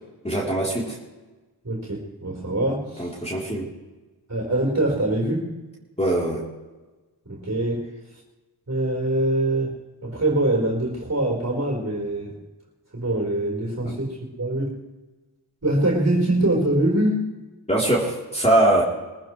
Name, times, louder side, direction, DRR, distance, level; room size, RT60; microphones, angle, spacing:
voice 1, 0.2-1.0 3.0-3.7 6.0-6.4 13.8-14.0 17.7-18.8, right 1 dB, 15° left, -4 dB, 3.5 m, -22 dB
voice 2, 1.6-3.1 4.3-5.5 7.3-7.9 8.7-9.8 10.0-12.4 12.9-14.7 15.6-17.2, right 1 dB, 40° right, -1 dB, 4.3 m, -23 dB
23.0 x 14.5 x 3.2 m, 1.2 s
wide cardioid pair, 55°, 42 cm